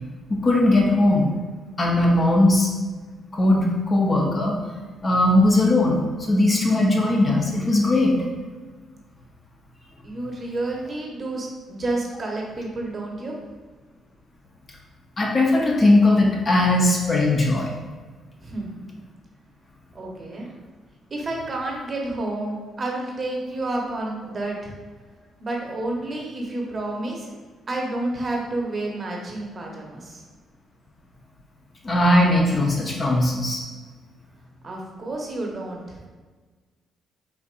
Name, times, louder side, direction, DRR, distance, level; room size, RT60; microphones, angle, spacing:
voice 1, 0.4-1.3 1.8-2.7 3.3-4.6 5.0-8.2 15.2-17.7 31.8-33.6, left 1 dB, 35° left, -1 dB, 0.7 m, -19 dB
voice 2, 10.0-13.3 18.4-18.8 19.9-20.5 21.1-24.8 25.4-27.3 27.7-30.2 34.6-36.0, right 2 dB, 40° right, -1 dB, 0.8 m, -30 dB
4.4 x 2.6 x 2.4 m, 1.4 s
supercardioid pair, 70°, 0 cm